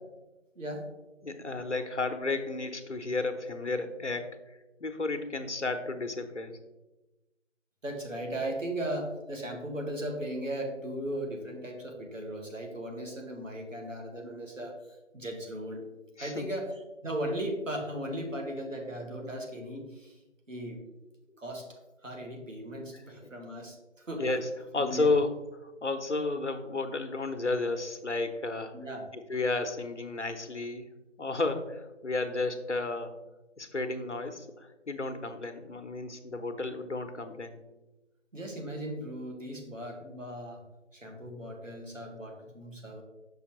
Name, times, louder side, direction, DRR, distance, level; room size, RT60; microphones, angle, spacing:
voice 1, 0.5-0.9 7.8-15.8 16.2-20.2 20.5-20.8 21.4-24.3 24.8-25.1 28.7-29.1 38.3-40.6 40.9-43.0, right 1 dB, 90° right, 1 dB, 1.7 m, -37 dB
voice 2, 1.2-4.4 4.8-6.6 16.2-16.5 23.2-23.3 24.2-28.8 29.1-30.9 31.2-33.2 33.6-37.6, left 3 dB, 65° left, 7 dB, 0.8 m, -32 dB
6.2 x 5.6 x 3.0 m, 1.0 s
figure-of-eight pair, 180°, 37 cm